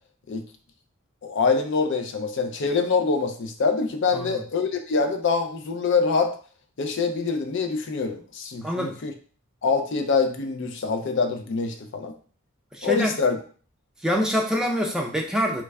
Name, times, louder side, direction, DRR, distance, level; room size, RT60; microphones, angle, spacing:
voice 1, 1.2-6.3 6.8-9.1 9.6-12.1 12.8-13.4, left 4 dB, 55° left, 6 dB, 0.5 m, -25 dB
voice 2, 8.6-9.0 12.7-13.1 14.0-15.6, equal, 5° right, 1 dB, 0.4 m, -25 dB
3.1 x 2.3 x 3.3 m, 0.42 s
head